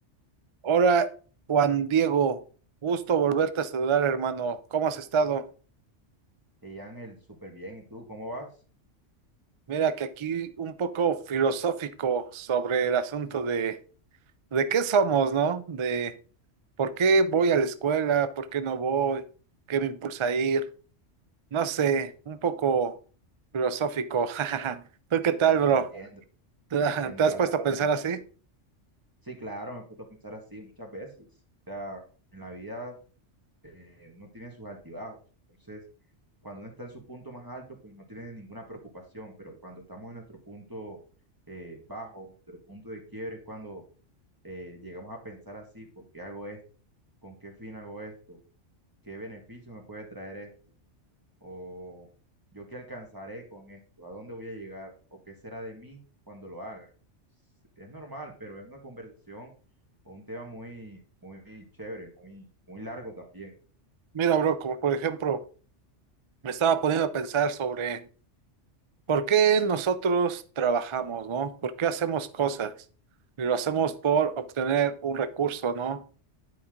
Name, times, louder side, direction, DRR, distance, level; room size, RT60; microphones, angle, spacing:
voice 1, 0.6-1.1 1.5-2.4 2.8-5.4 9.7-13.8 14.5-16.1 16.8-19.2 19.7-20.7 21.5-22.9 23.5-24.8 25.1-25.9 26.7-28.2 64.1-65.4 66.4-68.0 69.1-72.7 73.4-76.0, right 6 dB, 50° right, 13 dB, 0.3 m, -25 dB
voice 2, 6.6-8.5 25.7-26.2 26.8-27.9 29.2-31.3 31.7-32.0 32.3-33.0 33.6-35.2 35.5-35.8 36.4-41.0 41.5-43.8 44.4-46.6 47.2-48.4 49.0-50.5 51.4-52.1 52.5-56.9 57.8-59.5 60.0-63.5, right 1 dB, 15° right, 1 dB, 1.7 m, -42 dB
9.7 x 4.9 x 3.7 m, 0.38 s
omnidirectional pair, 1.3 m